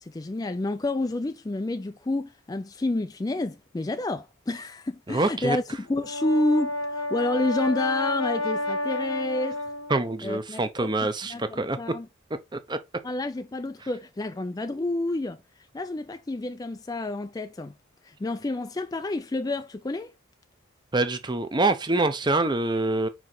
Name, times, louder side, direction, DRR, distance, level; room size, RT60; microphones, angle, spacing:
voice 1, 0.0-9.6 10.2-10.9 11.3-12.1 13.0-15.4 15.7-17.7 18.0-20.1, left 2 dB, 15° left, 0.4 m, -29 dB
voice 2, 5.1-5.6 9.9-11.8 12.5-12.8 20.9-23.1, right 2 dB, 20° right, 0.7 m, -25 dB
Brass instrument, 5.9-10.1, left 2 dB, 80° left, 1.0 m, -30 dB
5.4 x 4.6 x 3.9 m
head